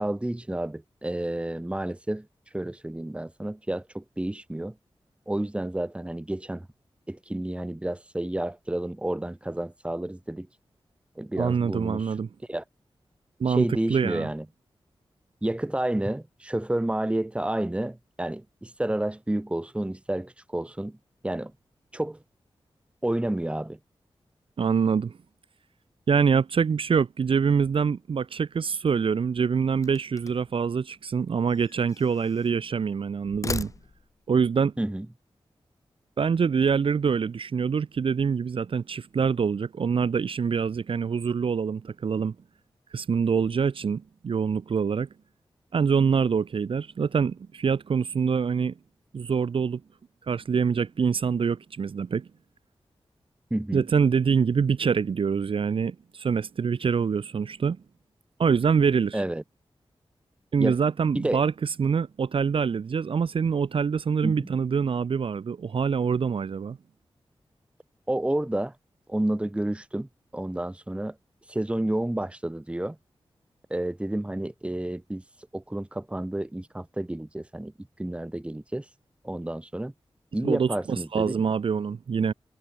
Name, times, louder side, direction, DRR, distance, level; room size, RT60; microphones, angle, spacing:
voice 1, 0.0-2.3 2.5-4.7 5.3-6.7 7.1-10.5 11.2-12.1 12.5-12.6 13.5-14.4 15.4-21.0 21.2-21.5 21.9-22.2 23.0-23.8 34.8-35.1 53.5-53.8 59.1-59.4 60.6-60.8 61.1-61.4 64.2-64.5 68.1-68.7 69.1-71.1 71.5-73.0 73.7-75.2 75.5-77.7 78.0-78.8 79.2-79.9 80.3-81.4, right 1 dB, 10° right, 1.5 m, -30 dB
voice 2, 11.4-12.3 13.4-14.3 24.6-25.1 26.1-33.7 34.3-34.7 36.2-42.3 42.9-45.1 45.7-48.7 49.1-49.8 50.3-52.3 53.7-57.8 58.4-59.2 60.5-66.8 80.4-82.3, right 6 dB, 65° right, 0.8 m, -25 dB
sound 1, 29.8-30.6 31.5-32.6 33.2-34.3, left 4 dB, 35° left, 0.5 m, -38 dB
wide cardioid pair, 100°, 10 cm